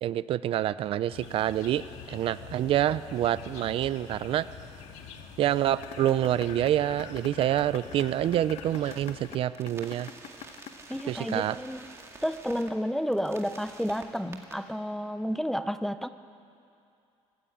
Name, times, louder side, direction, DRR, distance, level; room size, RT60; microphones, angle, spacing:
voice 1, 0.0-1.8 2.1-4.5 5.4-10.1 11.0-11.6, right 12 dB, 50° right, 16 dB, 0.4 m, -27 dB
sound 1, 1.1-9.4, left 7 dB, 75° left, 1.8 m, -45 dB
sound 2, 5.7-11.7, left 10 dB, 60° left, 1.0 m, -43 dB
sound 3, 8.8-9.1 9.5-12.7 13.1-14.5, right 3 dB, 25° right, 2.0 m, -48 dB
voice 2, 10.9-11.8 12.2-16.1, equal, ahead, 11 dB, 0.5 m, -31 dB
25.0 x 14.5 x 8.7 m, 2.6 s
cardioid pair, 160°, 12 cm